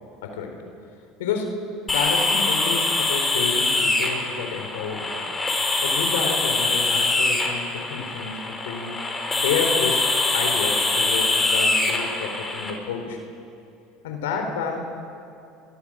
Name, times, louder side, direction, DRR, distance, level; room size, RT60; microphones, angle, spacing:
voice 1, 0.2-0.6 1.2-5.2 5.8-8.9 9.4-10.0 10.3-13.2 14.0-14.8, left 5 dB, 85° left, 4 dB, 4.2 m, -29 dB
sound 1, 1.9-12.7, left 3 dB, 20° left, 4.9 m, -23 dB
29.5 x 23.0 x 6.5 m, 2.7 s
supercardioid pair, 95°, 0 cm